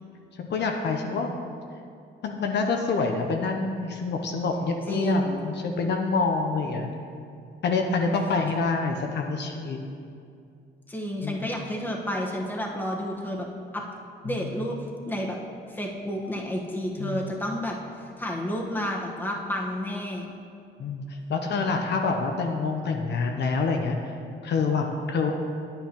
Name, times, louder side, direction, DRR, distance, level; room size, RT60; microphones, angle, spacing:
voice 1, 0.4-1.4 2.2-6.9 7.6-9.8 11.2-11.4 14.2-14.5 17.0-17.3 20.8-24.0 24.4-25.3, left 4 dB, 60° left, 3 dB, 0.7 m, -27 dB
voice 2, 4.9-5.4 10.9-13.4 13.7-13.8 14.2-14.8 15.1-15.4 15.7-20.3, equal, 10° left, -2 dB, 1.3 m, -30 dB
9.6 x 8.7 x 3.0 m, 2.5 s
cardioid pair, 90°, 20 cm